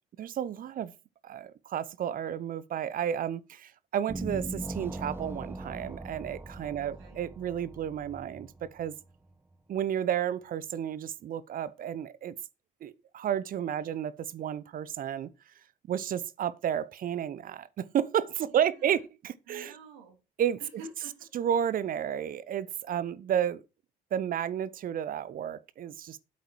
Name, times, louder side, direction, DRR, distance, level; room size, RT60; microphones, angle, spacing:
voice 1, 0.2-0.9 1.2-8.9 9.7-12.3 12.8-15.3 15.9-19.7 20.4-20.6 21.3-23.6 24.1-26.2, right 9 dB, 45° right, 0.9 m, -32 dB
sound 1, 4.1-9.3, right 2 dB, 10° right, 0.7 m, -40 dB
voice 2, 6.7-7.2 13.7-14.0 18.4-19.0 19.5-20.2 20.6-21.3, right 3 dB, 65° right, 3.2 m, -49 dB
8.5 x 7.9 x 4.8 m
figure-of-eight pair, 50°, 20 cm